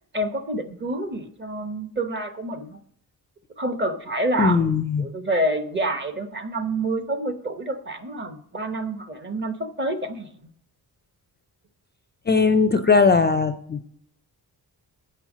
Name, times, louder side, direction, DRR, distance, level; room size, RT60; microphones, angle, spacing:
voice 1, 0.1-2.8 3.6-10.3, right 1 dB, 30° right, 9 dB, 0.9 m, -28 dB
voice 2, 4.4-5.1 12.3-13.9, left 4 dB, 25° left, 9 dB, 0.4 m, -19 dB
8.8 x 5.5 x 6.1 m, 0.64 s
wide cardioid pair, 150°, 40 cm